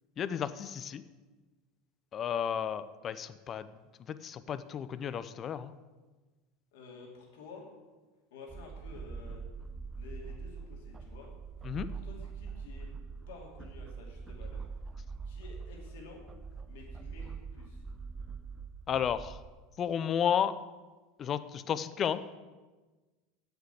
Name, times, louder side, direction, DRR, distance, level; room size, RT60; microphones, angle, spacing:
voice 1, 0.2-1.0 2.1-3.7 4.1-5.7 11.6-11.9 18.9-19.4 19.8-20.5 21.2-22.2, left 8 dB, 40° left, 14 dB, 0.6 m, -32 dB
voice 2, 6.7-7.7 8.3-9.4 9.9-11.3 11.9-12.9 13.3-14.6 15.2-16.2 16.7-17.8, left 4 dB, 75° left, -1 dB, 2.7 m, -51 dB
sound 1, 8.5-19.5, right 5 dB, 25° right, 0.7 m, -43 dB
8.2 x 8.1 x 8.2 m, 1.3 s
hypercardioid pair, 90°, 0 cm